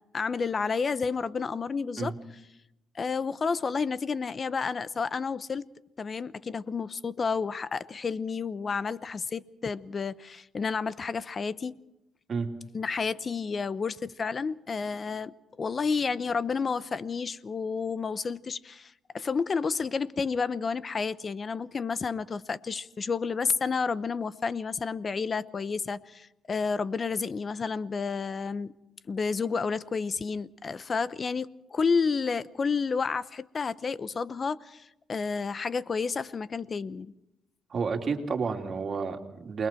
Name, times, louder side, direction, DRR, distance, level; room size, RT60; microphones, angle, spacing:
voice 1, 0.1-2.1 2.9-5.7 6.0-11.7 12.7-28.7 29.1-37.1, left 5 dB, 40° left, 0.8 m, -30 dB
voice 2, 37.7-39.7, right 5 dB, 45° right, 3.0 m, -30 dB
28.5 x 21.5 x 4.5 m
cardioid pair, 90°, 0 cm